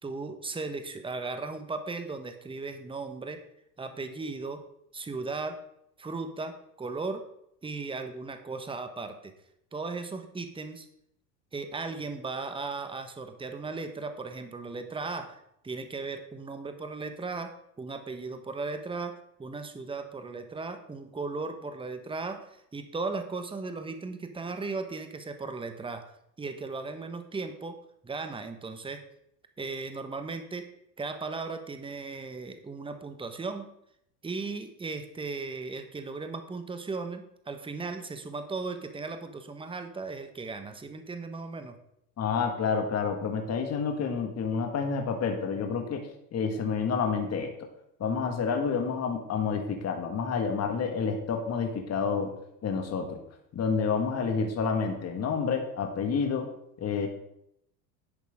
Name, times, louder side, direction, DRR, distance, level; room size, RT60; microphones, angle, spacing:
voice 1, 0.0-3.4 3.8-4.6 4.9-5.6 6.0-7.2 7.6-9.3 9.7-10.9 11.5-15.4 15.6-26.0 26.4-27.8 28.0-29.0 29.6-30.7 31.0-33.7 34.2-41.8, right 3 dB, 10° right, 7 dB, 1.2 m, -36 dB
voice 2, 42.2-47.5 48.0-52.3 52.6-53.2 53.5-56.5 56.8-57.1, left 5 dB, 30° left, 4 dB, 1.8 m, -29 dB
11.0 x 8.2 x 3.7 m, 0.76 s
hypercardioid pair, 90°, 49 cm